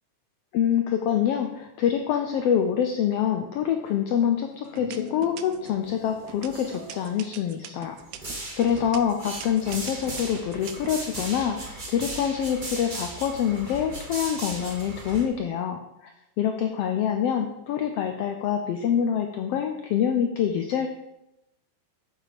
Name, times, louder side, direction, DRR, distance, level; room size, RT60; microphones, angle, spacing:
voice 1, 0.5-8.0 8.6-16.1 16.4-20.9, left 9 dB, 75° left, 5 dB, 1.4 m, -26 dB
sound 1, 3.8-4.3 4.8-5.8 6.3-11.3, right 12 dB, 75° right, 1.6 m, -41 dB
sound 2, 4.6-11.2, left 7 dB, 50° left, 1.4 m, -47 dB
sound 3, 5.7-6.1 6.3-7.3 8.0-15.3, right 2 dB, 35° right, 0.7 m, -37 dB
7.5 x 7.3 x 5.0 m, 0.89 s
omnidirectional pair, 3.4 m